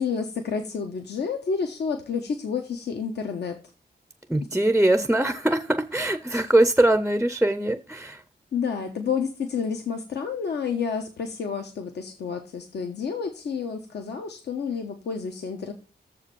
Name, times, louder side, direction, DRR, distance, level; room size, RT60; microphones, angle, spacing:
voice 1, 0.0-3.6 8.5-15.7, left 6 dB, 80° left, 1.1 m, -30 dB
voice 2, 4.3-8.2, right 1 dB, 5° right, 0.5 m, -22 dB
7.2 x 4.9 x 6.9 m
wide cardioid pair, 175°, 17 cm